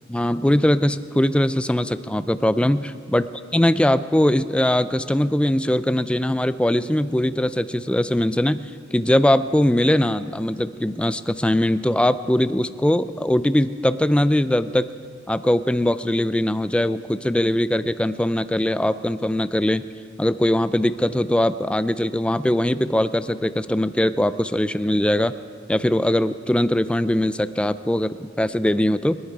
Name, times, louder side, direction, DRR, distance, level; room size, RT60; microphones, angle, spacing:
voice 1, 0.1-3.2 3.5-8.6 8.9-14.9 15.3-19.9 20.2-25.3 25.7-29.2, left 1 dB, 5° left, 13 dB, 0.3 m, -21 dB
26.5 x 11.0 x 4.9 m, 2.4 s
head